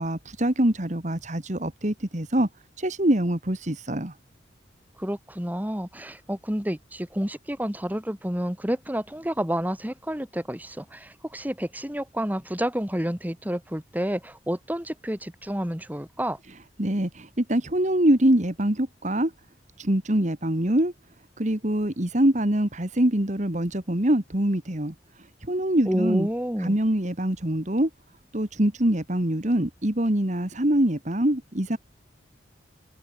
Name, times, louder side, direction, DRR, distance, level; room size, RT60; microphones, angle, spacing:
voice 1, 0.0-2.5 2.8-4.1 16.8-19.3 19.8-20.9 21.4-24.9 25.4-26.3 26.6-27.9 28.3-31.8, right 1 dB, 40° right, 2.2 m, -24 dB
voice 2, 5.0-16.4 25.9-26.7, equal, 10° right, 2.2 m, -29 dB
head